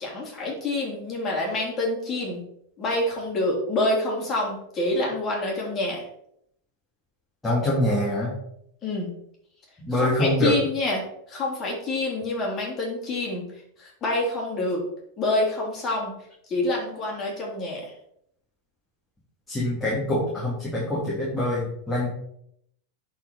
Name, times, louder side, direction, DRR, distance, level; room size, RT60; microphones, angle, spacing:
voice 1, 0.0-2.4 2.8-6.0 8.8-9.1 9.9-11.0 11.3-13.4 13.8-14.8 15.2-16.1 16.5-17.8, left 2 dB, 25° left, -2 dB, 3.4 m, -27 dB
voice 2, 7.4-8.3 9.8-10.5 19.5-22.1, left 1 dB, 10° left, -7 dB, 2.9 m, -24 dB
10.5 x 4.7 x 4.3 m, 0.72 s
supercardioid pair, 145°, 0 cm